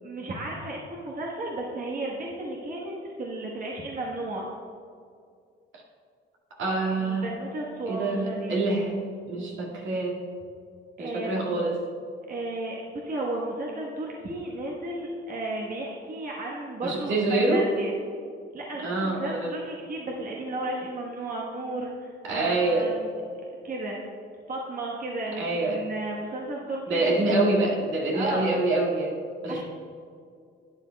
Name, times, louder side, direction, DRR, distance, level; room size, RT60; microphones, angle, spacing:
voice 1, 0.0-4.5 6.9-8.6 11.0-11.4 12.3-17.9 18.5-23.1 23.6-24.0 24.5-27.2 28.1-28.4 29.5-29.6, right 2 dB, 45° right, -2 dB, 1.3 m, -34 dB
voice 2, 6.6-7.3 7.9-9.0 9.2-10.2 11.0-11.8 16.8-17.7 18.8-19.5 22.2-22.9 25.4-25.8 26.9-29.2 29.4-29.6, right 2 dB, 75° right, -3 dB, 2.1 m, -26 dB
11.5 x 9.0 x 2.3 m, 2.3 s
cardioid pair, 90°, 20 cm